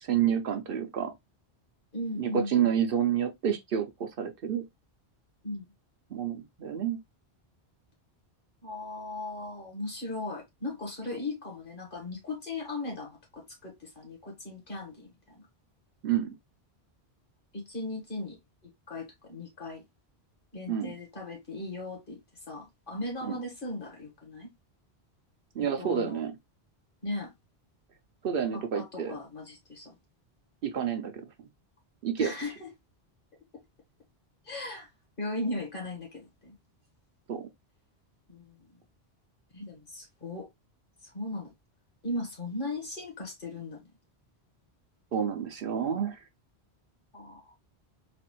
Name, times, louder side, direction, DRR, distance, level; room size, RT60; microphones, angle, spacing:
voice 1, 0.0-1.1 2.2-4.6 6.1-7.0 16.0-16.4 20.7-20.9 23.2-23.4 25.5-26.4 28.2-29.2 30.6-31.1 32.0-32.3 37.3-37.5 45.1-46.2, right 8 dB, 65° right, 0.7 m, -29 dB
voice 2, 1.9-2.5 5.4-5.6 8.6-15.4 17.5-18.4 18.9-19.8 20.5-22.2 22.5-24.5 25.6-26.2 27.0-27.3 28.5-30.0 32.2-32.7 34.4-34.9 35.2-36.5 38.3-38.6 39.5-40.5 41.0-41.5 42.0-43.8 47.1-47.5, left 2 dB, 55° left, 1.7 m, -37 dB
4.0 x 2.4 x 2.9 m
omnidirectional pair, 1.1 m